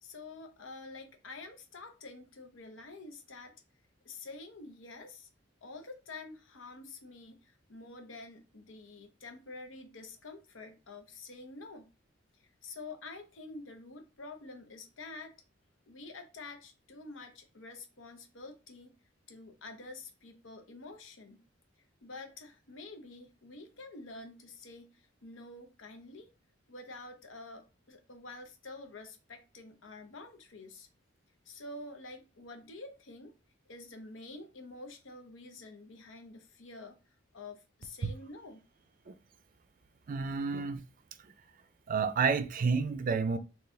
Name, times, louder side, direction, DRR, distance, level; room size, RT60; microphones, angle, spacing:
voice 1, 0.0-3.6 4.0-5.3 5.6-11.8 12.3-15.3 15.9-18.9 19.3-21.4 22.0-26.3 26.7-30.9 31.5-33.3 33.7-37.0 37.3-38.6, left 3 dB, 70° left, 0.8 m, -48 dB
voice 2, 40.1-40.8 41.9-43.4, right 5 dB, 45° right, 0.4 m, -30 dB
4.0 x 2.4 x 3.6 m
head